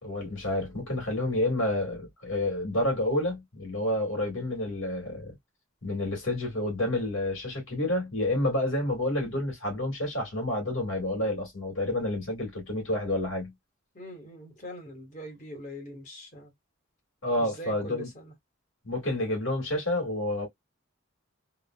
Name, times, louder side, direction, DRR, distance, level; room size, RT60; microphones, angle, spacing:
voice 1, 0.0-5.3 5.8-13.5 17.2-18.1 18.8-20.5, left 1 dB, 70° left, 2.0 m, -29 dB
voice 2, 13.9-16.5 17.4-18.3, equal, 35° left, 1.5 m, -43 dB
3.6 x 2.2 x 2.3 m
head